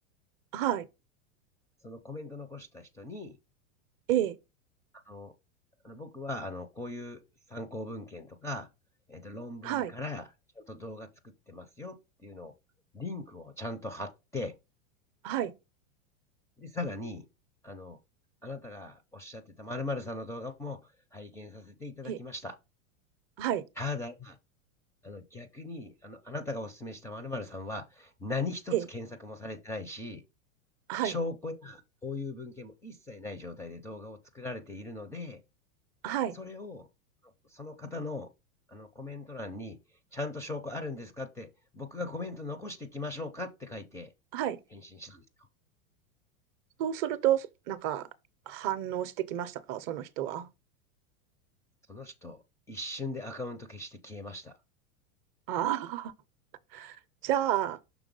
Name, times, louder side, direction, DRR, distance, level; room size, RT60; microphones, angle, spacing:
voice 1, 0.5-0.8 4.1-4.4 9.6-9.9 15.2-15.5 22.1-22.2 23.4-23.6 28.7-28.8 30.9-31.1 36.0-36.3 44.3-44.6 46.8-48.1 48.5-50.5 55.5-56.1 56.7-57.0 57.2-57.8, right 12 dB, 40° right, 0.6 m, -30 dB
voice 2, 1.8-3.4 5.1-5.3 5.8-7.2 7.5-8.7 9.1-10.3 10.6-12.5 12.9-14.5 16.6-17.3 17.6-18.0 18.4-22.5 23.8-24.4 25.0-30.2 31.0-35.4 36.3-36.9 37.5-38.3 38.7-39.8 40.1-41.5 41.7-44.1 44.7-45.2 51.9-54.5, left 2 dB, 5° left, 0.4 m, -39 dB
6.1 x 3.5 x 5.3 m
supercardioid pair, 130°, 41 cm